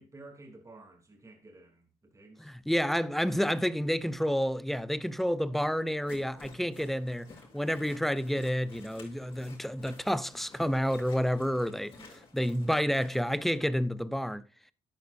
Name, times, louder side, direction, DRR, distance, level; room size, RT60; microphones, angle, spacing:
voice 1, 0.0-2.5 11.9-12.3, right 2 dB, 20° right, 3.1 m, -52 dB
voice 2, 2.5-11.9 12.3-14.4, equal, ahead, 0.5 m, -29 dB
sound 1, 6.0-13.6, left 3 dB, 35° left, 6.9 m, -53 dB
12.0 x 10.5 x 2.6 m
cardioid pair, 120°, 15 cm